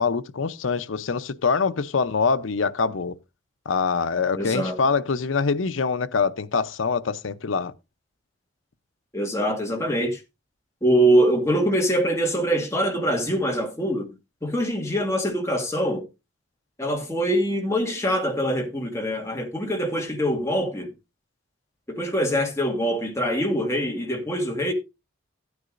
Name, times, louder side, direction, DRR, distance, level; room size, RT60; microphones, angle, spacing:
voice 1, 0.0-3.1 3.7-7.7, left 5 dB, 85° left, 0.7 m, -24 dB
voice 2, 4.4-4.8 9.1-10.2 10.8-14.1 14.4-16.0 16.8-20.9 21.9-24.7, equal, 15° left, 1.9 m, -24 dB
14.5 x 9.5 x 2.5 m
head